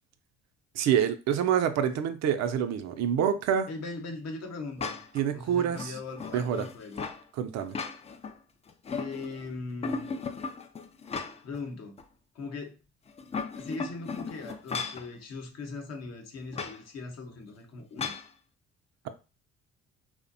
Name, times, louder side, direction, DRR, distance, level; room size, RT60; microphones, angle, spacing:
voice 1, 0.8-3.7 5.1-5.9 6.3-6.7 7.3-7.8, right 9 dB, 60° right, 0.4 m, -27 dB
voice 2, 3.7-5.0 5.3-7.0 8.9-10.1 11.4-12.0 12.3-12.8 13.6-18.1, left 3 dB, 55° left, 0.8 m, -39 dB
sound 1, 4.8-5.2 5.7-7.2 7.6-8.3 8.7-9.4 9.8-11.6 12.0-12.1 13.1-15.1 16.5-16.8 18.0-18.3, left 5 dB, 20° left, 0.3 m, -36 dB
2.5 x 2.1 x 2.5 m
hypercardioid pair, 60°, 31 cm